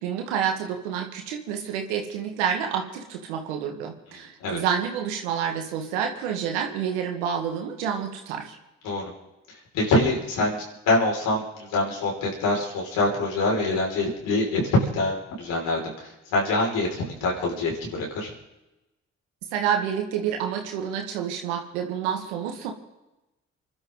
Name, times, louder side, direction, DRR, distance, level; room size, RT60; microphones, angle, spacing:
voice 1, 0.0-8.6 19.5-22.7, right 8 dB, 90° right, 3 dB, 2.0 m, -28 dB
voice 2, 9.7-18.3, left 2 dB, 80° left, -2 dB, 5.8 m, -25 dB
29.0 x 12.0 x 4.0 m, 0.99 s
hypercardioid pair, 45°, 33 cm